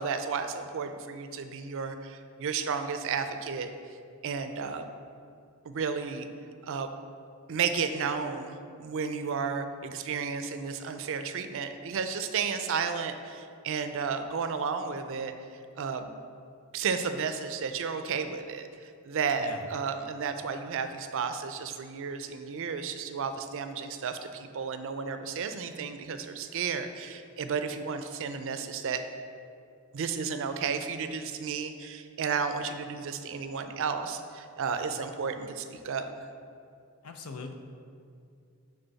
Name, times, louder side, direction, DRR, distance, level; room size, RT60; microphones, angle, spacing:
voice 1, 0.0-3.7 4.2-4.9 5.6-6.3 6.6-6.9 7.5-15.3 15.8-16.1 16.7-29.0 29.9-36.3, right 5 dB, 60° right, 8 dB, 0.4 m, -33 dB
voice 2, 37.0-37.5, left 4 dB, 80° left, 6 dB, 0.6 m, -41 dB
9.1 x 3.8 x 4.0 m, 2.3 s
head